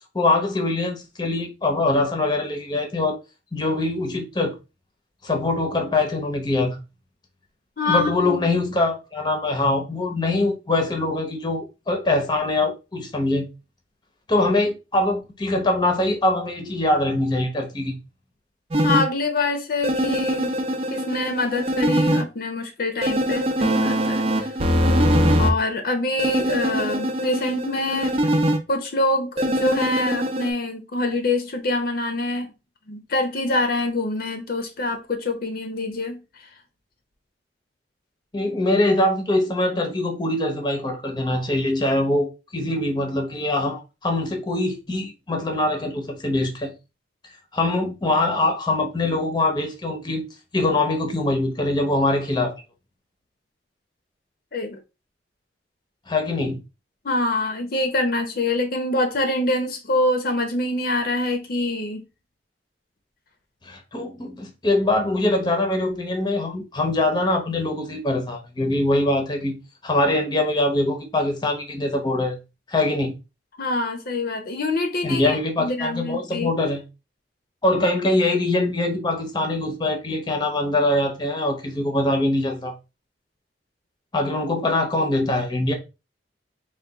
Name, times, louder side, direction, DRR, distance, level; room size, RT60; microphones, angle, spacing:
voice 1, 0.1-3.2 3.5-4.6 5.2-6.8 7.9-13.5 14.3-18.0 38.3-46.7 47.5-50.3 50.5-52.5 56.1-56.6 63.6-72.4 72.7-73.1 75.0-76.8 77.6-82.7 84.1-85.7, left 2 dB, 25° left, 0.8 m, -23 dB
voice 2, 7.8-8.6 18.8-20.5 20.9-24.5 25.4-28.2 28.7-32.5 32.9-36.2 54.5-54.8 57.0-62.0 73.6-76.5, left 2 dB, 60° left, 0.7 m, -25 dB
sound 1, 18.7-19.0 19.8-22.2 23.0-25.5 26.2-28.6 29.4-30.5, equal, 35° right, 0.6 m, -22 dB
3.9 x 2.4 x 3.5 m
head